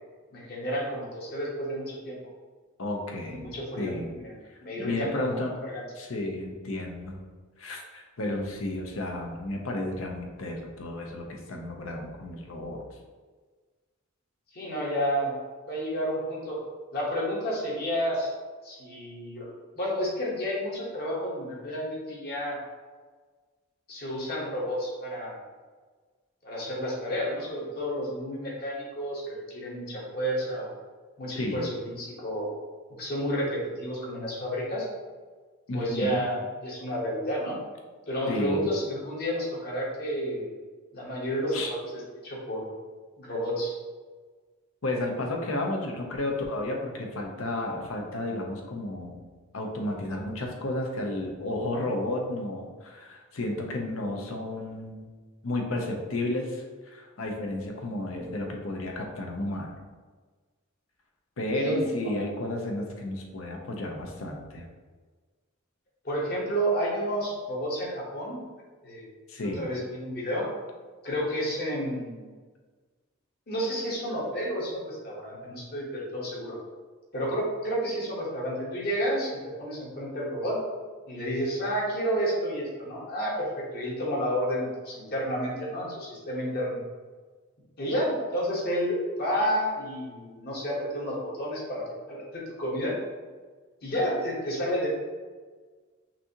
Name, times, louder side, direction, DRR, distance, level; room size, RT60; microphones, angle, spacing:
voice 1, 0.3-2.2 3.3-3.9 4.2-4.3 4.6-5.8 14.5-15.4 15.7-16.6 16.9-18.3 18.6-19.5 19.7-22.6 23.9-25.4 26.4-30.7 31.2-32.5 33.0-34.9 35.7-37.6 38.1-40.5 40.9-42.7 43.2-43.7 61.6-62.1 66.0-68.4 68.8-69.0 69.4-70.5 71.0-72.3 73.5-76.6 77.1-80.6 81.1-86.8 87.8-92.9 93.8-94.9, equal, 50° left, -4 dB, 1.3 m, -31 dB
voice 2, 2.8-3.5 3.8-4.1 4.8-5.5 6.0-7.2 7.6-12.8 31.4-31.6 35.7-36.3 38.3-38.7 41.5-41.7 44.8-49.2 49.5-55.1 55.4-59.7 61.4-64.6 69.3-69.7, left 1 dB, 70° left, 1 dB, 0.7 m, -32 dB
5.9 x 2.7 x 2.9 m, 1.4 s
head